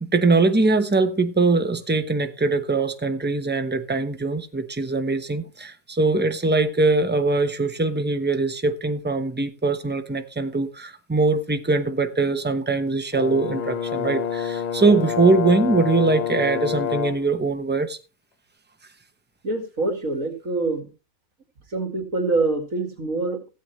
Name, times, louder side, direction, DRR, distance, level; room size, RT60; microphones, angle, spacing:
voice 1, 0.0-18.0, right 3 dB, 10° right, 0.8 m, -22 dB
Brass instrument, 13.1-17.3, left 8 dB, 80° left, 0.3 m, -27 dB
voice 2, 19.4-20.9 21.7-23.5, right 3 dB, 65° right, 2.9 m, -25 dB
17.0 x 8.3 x 3.2 m
omnidirectional pair, 1.5 m